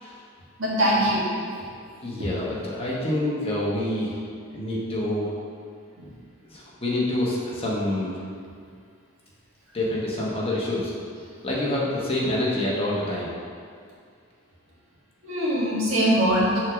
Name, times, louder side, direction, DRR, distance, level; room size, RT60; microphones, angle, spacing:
voice 1, 0.6-1.6 6.0-6.1 15.2-16.6, equal, 65° right, -6 dB, 1.8 m, -22 dB
voice 2, 2.0-4.2 4.5-5.3 6.5-8.2 9.7-10.9 11.4-13.3, left 1 dB, 25° left, -5 dB, 1.1 m, -27 dB
6.3 x 3.7 x 6.1 m, 2.2 s
head